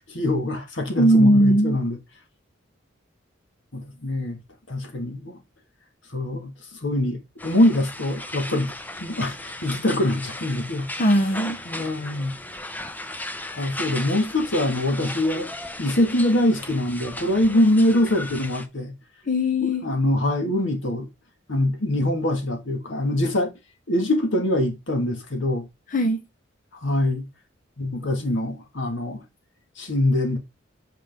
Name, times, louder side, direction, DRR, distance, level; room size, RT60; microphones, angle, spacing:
voice 1, 0.1-2.0 3.7-4.4 4.7-5.4 6.1-8.7 9.0-10.9 11.7-12.3 13.5-15.5 15.8-18.9 19.6-21.1 21.5-23.5 23.9-25.7 26.7-27.3 27.8-29.2 29.8-30.4, left 1 dB, 65° left, 1.8 m, -24 dB
voice 2, 1.0-1.8 11.0-11.6 19.3-19.8 25.9-26.2, equal, 40° left, 0.7 m, -19 dB
sound 1, 7.4-18.7, left 1 dB, 10° left, 0.6 m, -36 dB
8.0 x 5.1 x 3.5 m
head